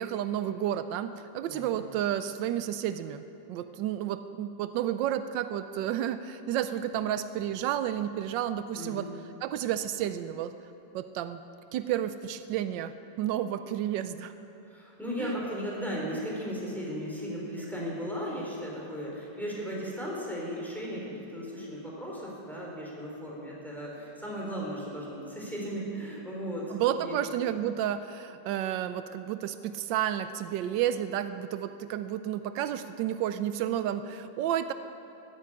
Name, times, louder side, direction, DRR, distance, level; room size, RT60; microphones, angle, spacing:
voice 1, 0.0-9.1 9.4-10.5 10.9-11.4 11.7-14.3 15.2-15.4 26.7-34.7, right 11 dB, 85° right, 11 dB, 1.3 m, -31 dB
voice 2, 1.5-1.8 8.8-9.1 14.7-27.2, equal, ahead, -4 dB, 3.9 m, -36 dB
14.0 x 9.4 x 9.8 m, 2.9 s
omnidirectional pair, 1.9 m